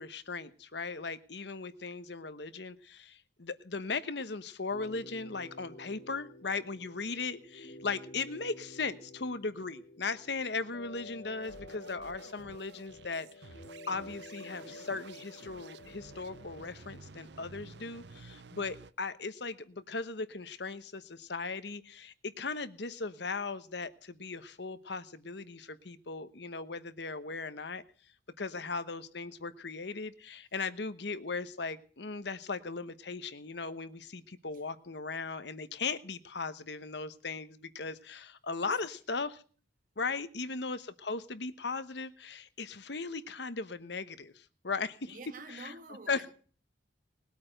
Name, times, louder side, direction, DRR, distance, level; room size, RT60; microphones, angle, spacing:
voice 1, 0.0-13.5 13.9-27.8 28.4-39.4 40.0-45.2 45.5-45.7 46.1-46.2, left 4 dB, 70° left, 1.0 m, -38 dB
sound 1, 4.7-16.7, left 2 dB, 45° left, 2.9 m, -51 dB
sound 2, 11.4-18.9, right 4 dB, 65° right, 0.7 m, -52 dB
voice 2, 45.1-46.3, right 3 dB, 45° right, 1.6 m, -49 dB
20.0 x 8.6 x 7.8 m
head